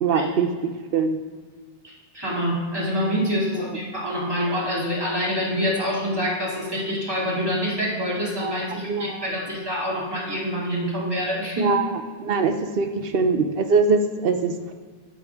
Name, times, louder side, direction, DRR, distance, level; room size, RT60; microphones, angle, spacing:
voice 1, 0.0-1.2 8.4-8.5 8.9-9.3 11.6-11.9 12.2-14.7, right 4 dB, 65° right, 7 dB, 0.9 m, -22 dB
voice 2, 1.8-11.8, equal, 25° right, -6 dB, 2.6 m, -26 dB
12.0 x 7.1 x 3.5 m, 1.5 s
omnidirectional pair, 1.0 m